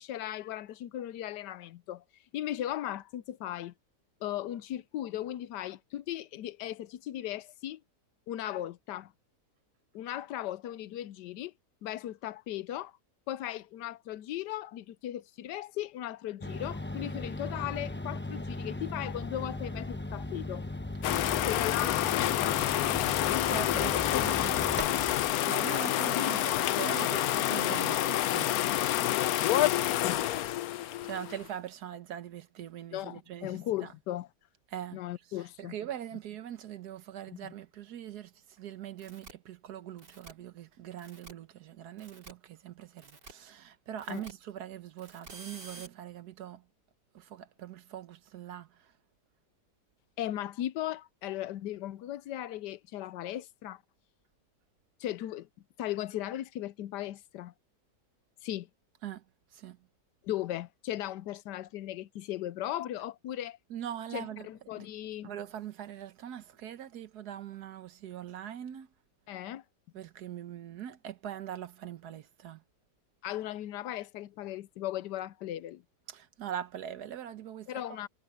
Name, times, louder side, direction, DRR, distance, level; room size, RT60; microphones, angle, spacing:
voice 1, 0.0-2.0 2.3-3.7 4.2-7.8 8.3-9.1 9.9-11.5 11.8-12.9 13.3-20.6 21.5-22.8 23.3-24.7 26.1-26.4 30.0-30.2 32.9-34.3 34.9-35.7 37.4-37.5 44.1-44.2 50.2-53.8 55.0-55.5 55.8-57.5 58.4-58.7 60.2-63.6 64.1-65.3 69.3-69.6 73.2-75.8 77.7-78.1, left 13 dB, 85° left, 1.3 m, -37 dB
sound 1, 16.4-25.3, left 2 dB, 10° left, 0.5 m, -38 dB
sound 2, 21.0-31.5, left 13 dB, 70° left, 1.0 m, -28 dB
voice 2, 23.2-28.5 30.7-33.9 34.7-35.0 35.6-46.6 47.1-48.9 59.0-59.2 59.5-59.8 63.7-64.5 64.8-64.9 65.2-68.9 69.9-72.6 76.1-78.1, right 10 dB, 70° right, 1.5 m, -42 dB
sound 3, 39.0-39.3 40.0-40.3 41.0-41.3 42.0-42.3 43.0-43.3 44.0-44.3 45.0-45.9, right 3 dB, 85° right, 4.9 m, -49 dB
omnidirectional pair, 1.8 m